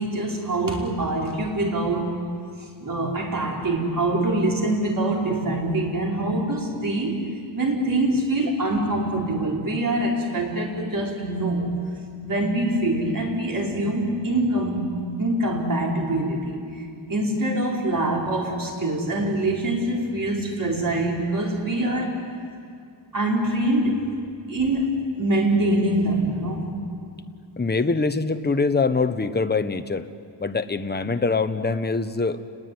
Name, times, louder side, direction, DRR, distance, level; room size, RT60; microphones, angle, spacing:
voice 1, 0.0-2.1 2.6-7.2 7.5-11.7 12.2-14.9 15.2-16.5 17.1-22.3 23.1-24.0 24.5-26.8, right 1 dB, 45° right, -2 dB, 5.2 m, -24 dB
voice 2, 27.6-30.0 30.4-32.4, left 4 dB, 20° left, 9 dB, 1.0 m, -24 dB
30.0 x 20.5 x 9.6 m, 2.3 s
wide cardioid pair, 120°, 45 cm